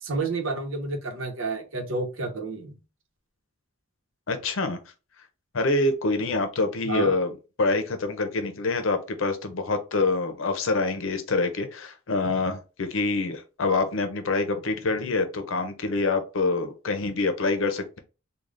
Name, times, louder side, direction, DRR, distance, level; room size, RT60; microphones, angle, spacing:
voice 1, 0.0-2.8 6.8-7.1, right 3 dB, 80° right, 0.9 m, -30 dB
voice 2, 4.3-4.8 5.5-7.3 7.6-18.0, left 3 dB, 75° left, 0.7 m, -26 dB
3.8 x 2.3 x 3.3 m
head